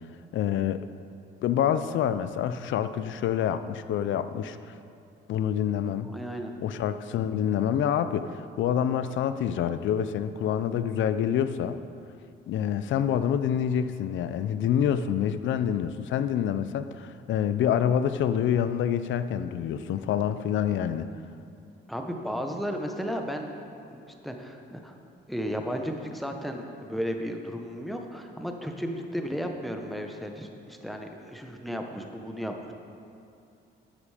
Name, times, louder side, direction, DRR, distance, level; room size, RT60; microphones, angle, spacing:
voice 1, 0.3-0.8 1.4-4.6 5.3-6.1 6.6-11.8 12.5-21.1, left 9 dB, 75° left, 12 dB, 0.6 m, -27 dB
voice 2, 6.1-6.5 21.9-23.5 23.9-24.9 25.3-32.7, equal, ahead, 3 dB, 1.1 m, -34 dB
10.0 x 8.4 x 5.0 m, 2.6 s
cardioid pair, 90°, 20 cm